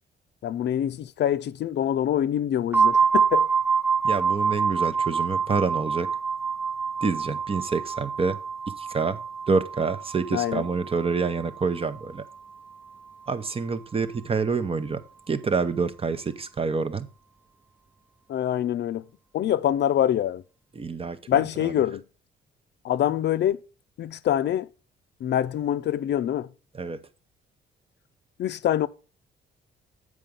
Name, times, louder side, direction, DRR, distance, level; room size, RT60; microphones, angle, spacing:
voice 1, 0.4-3.5 10.3-10.6 18.3-19.1 19.3-20.4 21.3-22.0 22.8-23.6 24.0-24.7 25.2-26.5 28.4-28.9, left 11 dB, 60° left, 0.5 m, -25 dB
sound 1, 2.7-12.4, right 5 dB, 10° right, 0.4 m, -26 dB
voice 2, 4.0-6.1 7.0-8.4 8.7-9.2 9.5-12.2 13.3-15.0 15.3-17.1 20.8-21.7 26.7-27.0, right 5 dB, 30° right, 0.8 m, -27 dB
7.5 x 4.9 x 5.2 m
cardioid pair, 90°, 20 cm